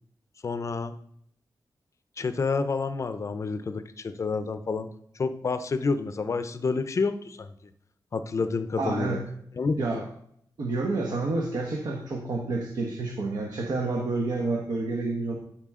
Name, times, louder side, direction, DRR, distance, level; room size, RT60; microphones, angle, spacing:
voice 1, 0.4-0.9 2.2-4.9 5.2-7.5 8.1-9.2 9.6-10.0, left 4 dB, 40° left, 10 dB, 0.6 m, -29 dB
voice 2, 8.8-9.3 9.8-10.0 10.6-15.4, right 3 dB, 65° right, 1 dB, 1.1 m, -29 dB
13.5 x 4.5 x 3.7 m, 0.69 s
wide cardioid pair, 130°, 8 cm